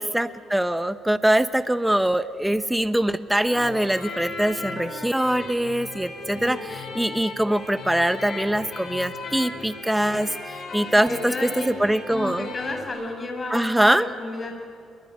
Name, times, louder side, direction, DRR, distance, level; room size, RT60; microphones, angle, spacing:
voice 1, 0.0-12.5 13.5-14.1, right 1 dB, 5° right, 12 dB, 0.9 m, -23 dB
sound 1, 3.4-12.8, left 3 dB, 55° left, 7.9 m, -36 dB
voice 2, 6.1-6.6 11.0-11.8 12.1-14.6, left 2 dB, 30° left, 4 dB, 7.3 m, -33 dB
26.5 x 22.5 x 9.6 m, 2.5 s
cardioid pair, 90°, 0 cm